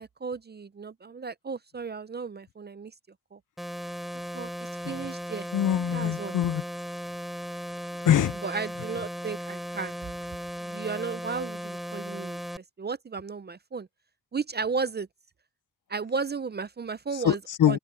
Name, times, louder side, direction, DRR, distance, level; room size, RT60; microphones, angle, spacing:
voice 1, 0.0-2.9 3.3-3.4 4.3-4.5 4.9-5.5 5.9-6.3 8.4-9.9 10.6-13.9 14.3-15.1 15.9-17.4 17.7-17.8, right 5 dB, 30° right, 0.4 m, -34 dB
sound 1, 3.6-12.6, equal, ahead, 3.9 m, -37 dB
voice 2, 5.5-6.6 8.0-8.4 17.1-17.8, left 10 dB, 55° left, 0.5 m, -24 dB
open air
wide cardioid pair, 145°, 38 cm